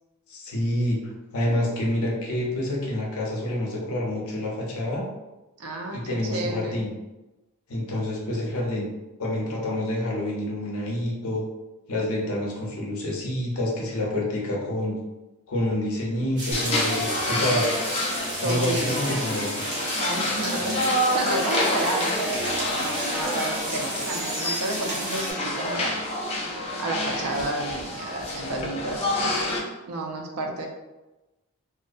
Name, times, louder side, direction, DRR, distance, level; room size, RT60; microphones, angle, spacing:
voice 1, 0.3-1.0 1.3-5.0 5.9-6.9 7.7-8.9 9.2-11.4 11.9-15.0 15.5-17.7 18.4-19.6, left 1 dB, 75° left, -2 dB, 0.6 m, -27 dB
voice 2, 5.6-6.9 18.4-19.1 20.0-26.0 26.8-29.5 29.9-30.7, right 2 dB, 85° right, 2 dB, 0.5 m, -31 dB
sound 1, 16.4-25.3, right 1 dB, 50° right, 0.8 m, -33 dB
sound 2, 16.5-29.6, left 1 dB, 30° left, 0.3 m, -28 dB
2.4 x 2.0 x 2.5 m, 1.1 s
head